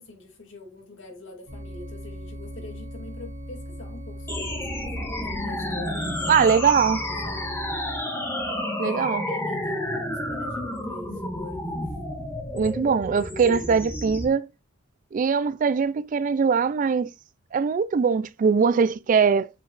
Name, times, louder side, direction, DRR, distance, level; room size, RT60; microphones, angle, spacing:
voice 1, 0.0-6.5 7.3-7.7 8.8-11.9, left 2 dB, 65° left, 2.6 m, -44 dB
sound 1, 1.5-8.0, equal, 70° right, 2.7 m, -38 dB
sound 2, 4.3-14.3, left 1 dB, 10° left, 1.9 m, -31 dB
voice 2, 6.3-7.1 8.8-9.2 12.5-14.5 15.1-17.1 17.5-19.5, right 6 dB, 40° right, 0.3 m, -21 dB
8.2 x 4.9 x 2.5 m
head